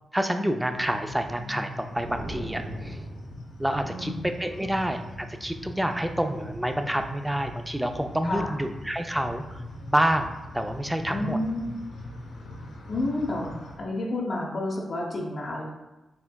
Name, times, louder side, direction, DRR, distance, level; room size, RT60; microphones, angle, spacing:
voice 1, 0.1-3.0 3.6-9.6 9.9-11.4, right 1 dB, 10° right, 6 dB, 0.4 m, -28 dB
sound 1, 0.7-13.8, left 1 dB, 85° left, 0.8 m, -41 dB
sound 2, 1.9-3.5, right 1 dB, 50° right, 0.8 m, -39 dB
voice 2, 3.8-4.2 8.2-8.6 11.0-11.7 12.9-13.5 13.8-15.6, left 2 dB, 55° left, -2 dB, 0.8 m, -30 dB
4.4 x 3.3 x 2.3 m, 1.0 s
supercardioid pair, 50°, 0 cm